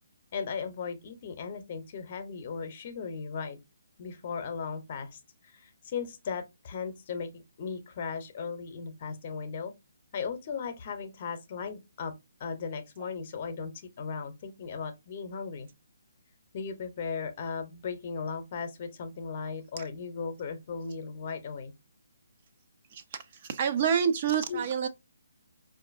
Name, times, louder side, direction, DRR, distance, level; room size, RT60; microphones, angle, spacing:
voice 1, 0.3-3.6 4.0-9.7 10.1-12.1 12.4-15.7 16.5-21.7 24.5-24.6, left 5 dB, 40° left, 0.7 m, -37 dB
voice 2, 23.3-24.9, right 7 dB, 40° right, 0.4 m, -27 dB
4.4 x 2.6 x 2.5 m
figure-of-eight pair, 145°, 0 cm